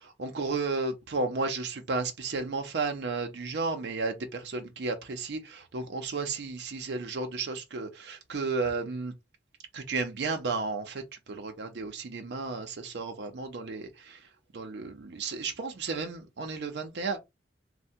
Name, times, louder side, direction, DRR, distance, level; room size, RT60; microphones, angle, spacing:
voice 1, 0.0-9.1 9.7-17.2, right 3 dB, 70° right, 0.5 m, -33 dB
3.3 x 2.1 x 2.7 m
head